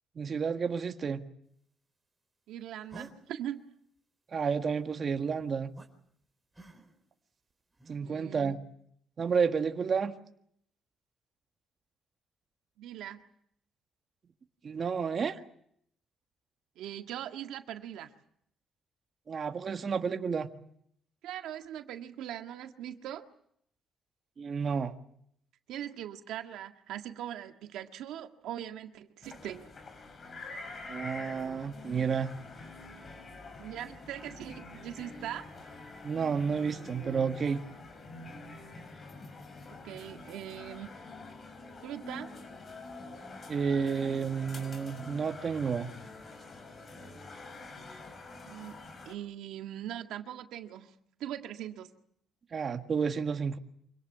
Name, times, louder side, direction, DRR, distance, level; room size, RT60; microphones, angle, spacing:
voice 1, 0.2-1.2 4.3-5.7 7.9-8.6 9.2-10.1 14.6-15.4 19.3-20.5 24.4-24.9 30.9-32.3 36.0-37.6 43.5-45.9 52.5-53.6, right 6 dB, 45° right, 6 dB, 1.6 m, -31 dB
voice 2, 2.5-3.6 8.0-8.5 12.8-13.2 16.8-18.1 21.2-23.2 25.7-29.7 33.6-35.5 39.8-40.9 41.8-42.3 48.5-50.9 51.2-51.9, right 11 dB, 85° right, 6 dB, 1.7 m, -41 dB
sound 1, 2.9-3.1 5.8-5.9 6.5-7.1 7.7-8.0, right 3 dB, 10° right, 4.5 m, -49 dB
sound 2, 29.2-49.1, left 2 dB, 45° left, 5.4 m, -46 dB
26.0 x 18.0 x 9.4 m, 0.71 s
cardioid pair, 90°, 0 cm